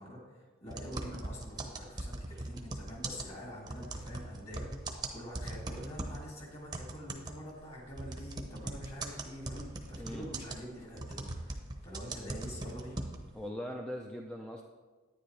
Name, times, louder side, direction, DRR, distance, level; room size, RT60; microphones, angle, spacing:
voice 1, 0.0-13.0, equal, 30° left, -2 dB, 2.6 m, -46 dB
sound 1, 0.7-6.3 6.7-13.4, right 2 dB, 20° right, 0.8 m, -40 dB
voice 2, 13.3-14.6, equal, 5° left, 1 dB, 0.5 m, -40 dB
10.0 x 9.8 x 3.3 m, 1.3 s
head